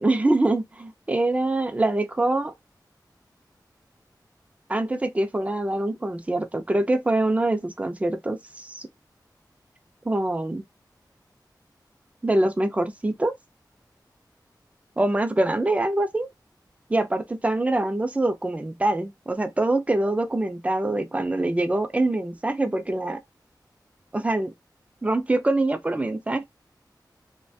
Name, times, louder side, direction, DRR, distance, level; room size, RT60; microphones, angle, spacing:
voice 1, 0.0-2.5 4.7-8.9 10.1-10.6 12.2-13.3 15.0-16.3 16.9-23.2 24.1-24.5 25.0-26.4, right 2 dB, 20° right, 0.4 m, -24 dB
2.4 x 2.1 x 2.6 m
wide cardioid pair, 95°, 8 cm